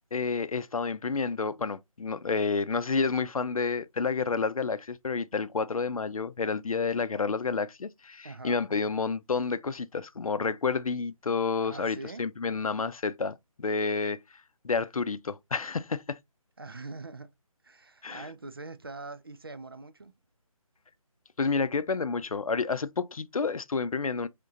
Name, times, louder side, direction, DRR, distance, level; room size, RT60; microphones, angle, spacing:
voice 1, 0.1-14.2 14.6-16.2 18.0-18.3 21.4-24.3, left 4 dB, 75° left, 0.6 m, -30 dB
voice 2, 8.2-8.6 11.6-12.2 16.6-17.3 17.6-20.1, right 3 dB, 40° right, 0.5 m, -43 dB
5.1 x 3.7 x 2.7 m
figure-of-eight pair, 180°, 18 cm